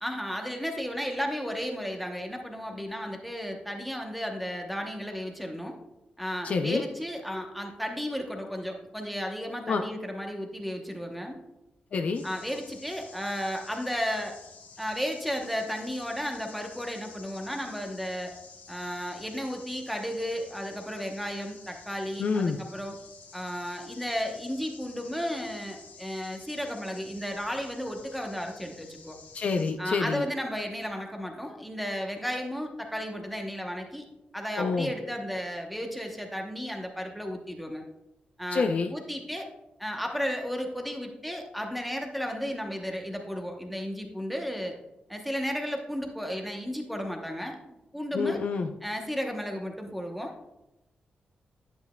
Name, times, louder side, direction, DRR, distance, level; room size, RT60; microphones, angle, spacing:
voice 1, 0.0-5.8 6.2-11.4 12.2-14.3 14.8-18.3 18.7-22.9 23.3-29.2 29.8-34.0 34.3-37.8 38.4-39.5 39.8-44.8 45.1-48.4 48.8-50.5, equal, ahead, 2 dB, 0.8 m, -34 dB
voice 2, 6.4-6.8 9.7-9.8 11.9-12.2 22.2-22.6 29.3-30.2 34.6-34.9 38.5-38.9 48.1-48.7, left 4 dB, 45° left, 6 dB, 0.5 m, -27 dB
sound 1, 12.1-29.7, left 5 dB, 65° left, 1.0 m, -51 dB
10.5 x 8.2 x 2.2 m, 0.95 s
wide cardioid pair, 175°, 3 cm